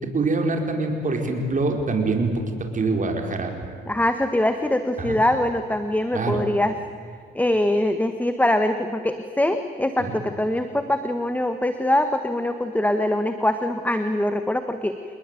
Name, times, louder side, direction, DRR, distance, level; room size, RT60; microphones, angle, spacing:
voice 1, 0.0-2.4 2.7-3.5 5.0-5.2 6.1-6.4 10.0-10.1, right 3 dB, 40° right, 3 dB, 5.0 m, -24 dB
voice 2, 3.9-6.7 7.3-15.0, left 1 dB, 10° left, 8 dB, 1.5 m, -23 dB
28.0 x 20.5 x 9.2 m, 2.1 s
cardioid pair, 90°, 20 cm